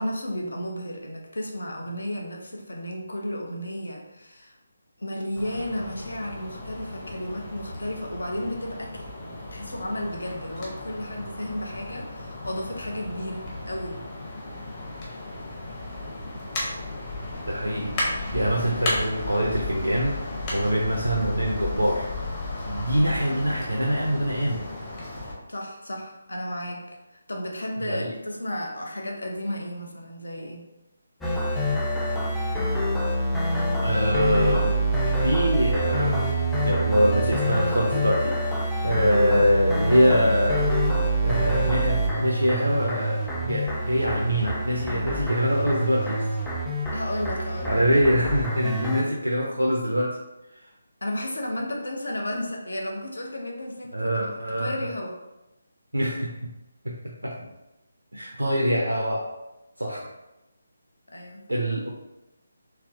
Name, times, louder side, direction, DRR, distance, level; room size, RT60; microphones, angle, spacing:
voice 1, 0.0-4.6 5.0-14.0 22.7-23.6 25.5-30.6 46.9-47.8 51.0-54.3 54.6-55.2 61.1-61.4, left 1 dB, 70° left, 1 dB, 0.7 m, -33 dB
sound 1, 5.4-25.3, left 2 dB, 25° left, 0.8 m, -34 dB
voice 2, 17.5-20.2 20.5-22.1 22.6-24.6 27.9-28.1 33.8-34.7 35.0-36.2 36.6-40.7 41.2-46.3 47.6-50.2 53.9-54.7 55.9-56.5 56.8-57.5 58.1-59.2 59.8-60.1 61.5-61.9, equal, 80° right, -2 dB, 0.5 m, -24 dB
sound 2, 31.2-49.0, right 1 dB, 5° left, 0.4 m, -26 dB
3.3 x 3.0 x 2.5 m, 0.95 s
figure-of-eight pair, 150°, 0 cm